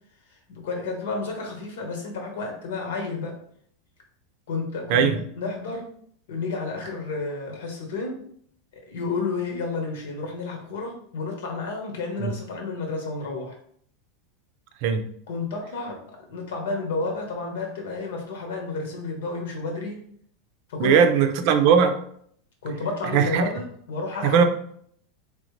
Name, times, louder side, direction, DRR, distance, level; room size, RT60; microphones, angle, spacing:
voice 1, 0.5-3.4 4.5-5.9 6.3-8.2 8.7-13.6 15.3-20.0 20.7-21.1 22.6-24.4, left 3 dB, 80° left, 1 dB, 1.3 m, -31 dB
voice 2, 20.8-22.0 23.1-23.5 24.2-24.4, right 7 dB, 50° right, 7 dB, 0.5 m, -19 dB
3.8 x 3.3 x 3.2 m, 0.64 s
supercardioid pair, 160°, 0 cm